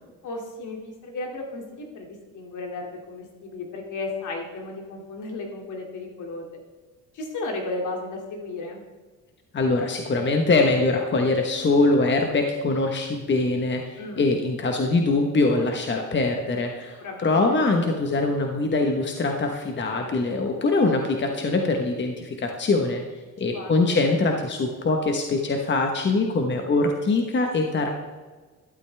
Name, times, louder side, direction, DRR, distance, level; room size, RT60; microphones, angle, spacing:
voice 1, 0.2-6.4 7.1-8.8 14.0-14.3 17.0-17.6 23.4-24.0, left 2 dB, 65° left, 1 dB, 2.7 m, -34 dB
voice 2, 9.5-23.0 23.4-27.9, left 3 dB, 35° left, 3 dB, 1.3 m, -23 dB
12.5 x 12.0 x 3.5 m, 1.4 s
cardioid pair, 100°, 32 cm